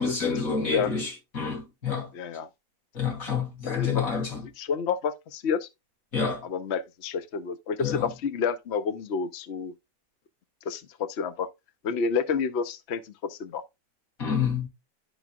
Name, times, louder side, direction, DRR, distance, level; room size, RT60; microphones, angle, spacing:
voice 1, 0.0-2.1 2.9-4.5 6.1-6.4 7.8-8.1 14.2-14.7, left 5 dB, 45° left, 2.9 m, -28 dB
voice 2, 2.1-2.5 3.7-4.1 4.6-5.7 6.5-9.7 10.6-11.5 11.8-13.6, left 6 dB, 70° left, 0.6 m, -29 dB
12.0 x 4.0 x 2.2 m
omnidirectional pair, 2.1 m